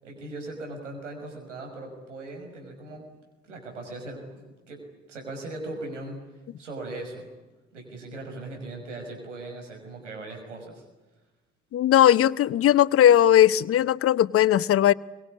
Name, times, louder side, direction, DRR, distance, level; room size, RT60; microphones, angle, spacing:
voice 1, 0.0-3.1 3.5-4.2 4.7-4.8 5.1-6.2 6.6-7.3 7.7-10.8, right 2 dB, 80° right, 6.1 m, -39 dB
voice 2, 11.7-14.9, left 11 dB, 40° left, 0.8 m, -18 dB
24.0 x 23.5 x 9.7 m
figure-of-eight pair, 50°, 36 cm